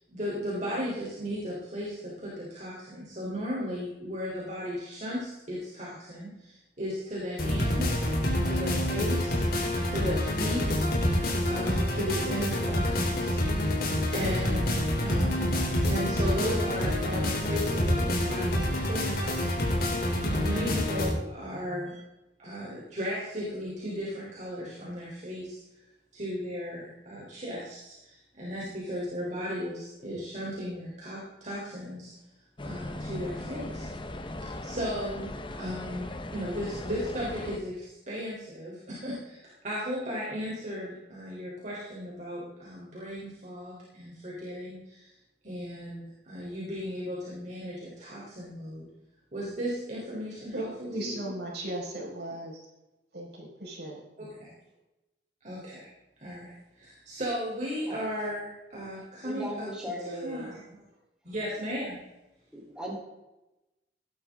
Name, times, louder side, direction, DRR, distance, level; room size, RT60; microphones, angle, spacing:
voice 1, 0.1-8.1 8.4-9.4 9.9-10.8 11.4-13.4 14.1-19.7 20.3-22.0 22.4-25.6 26.1-32.1 32.6-33.9 34.4-45.1 45.4-48.9 49.3-51.3 54.2-54.5 55.4-55.9 56.2-59.7 60.1-60.8 61.2-62.0, equal, 40° right, -6 dB, 3.8 m, -36 dB
sound 1, 7.4-21.1, left 1 dB, 55° left, 3.5 m, -27 dB
sound 2, 32.6-37.6, left 1 dB, 30° left, 1.1 m, -39 dB
voice 2, 50.5-52.6 53.1-53.9, right 1 dB, 65° right, -3 dB, 5.2 m, -36 dB
voice 3, 59.2-60.5 62.5-62.9, equal, 5° right, -4 dB, 3.8 m, -37 dB
17.0 x 11.5 x 3.7 m, 0.98 s
head